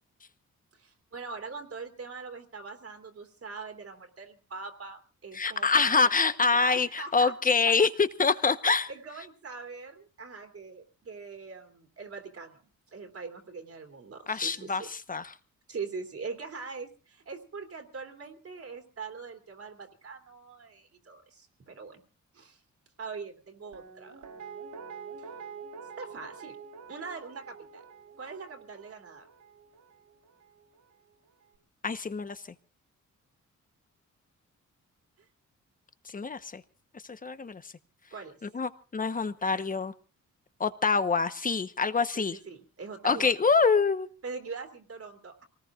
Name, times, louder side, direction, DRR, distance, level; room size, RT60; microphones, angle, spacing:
voice 1, 0.7-6.2 6.5-7.3 7.7-7.8 8.9-14.9 15.7-22.0 22.3-22.6 23.0-24.2 25.2-25.3 26.0-26.6 26.9-27.8 28.2-29.3 38.1-38.3 42.1-43.3 44.2-45.4, right 4 dB, 50° right, 4 dB, 3.0 m, -42 dB
voice 2, 5.3-8.9 14.3-15.3 31.8-32.4 36.1-36.6 37.1-37.6 38.4-39.9 40.6-42.4 43.0-44.1, left 4 dB, 25° left, 12 dB, 1.1 m, -26 dB
Guitar, 23.7-30.7 31.1-31.2, right 6 dB, 70° right, 3.9 m, -47 dB
27.0 x 19.0 x 2.5 m, 0.35 s
cardioid pair, 115°, 30 cm